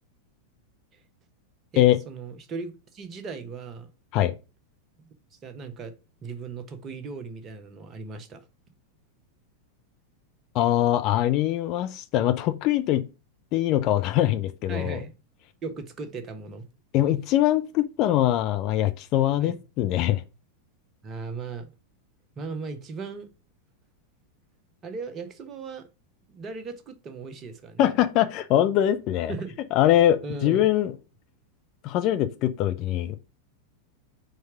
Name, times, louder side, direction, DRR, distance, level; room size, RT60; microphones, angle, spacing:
voice 1, 1.7-3.9 5.4-5.9 6.2-8.5 14.7-15.1 15.6-16.6 19.4-19.6 21.0-21.7 22.4-23.3 24.8-25.9 26.3-27.8 29.3-29.5 30.2-30.7, right 4 dB, 25° right, 1.2 m, -37 dB
voice 2, 10.5-13.0 13.5-15.0 16.9-20.2 27.8-29.3 29.7-30.9 31.8-33.2, left 12 dB, 40° left, 0.5 m, -22 dB
4.7 x 4.5 x 5.9 m
figure-of-eight pair, 90°, 0 cm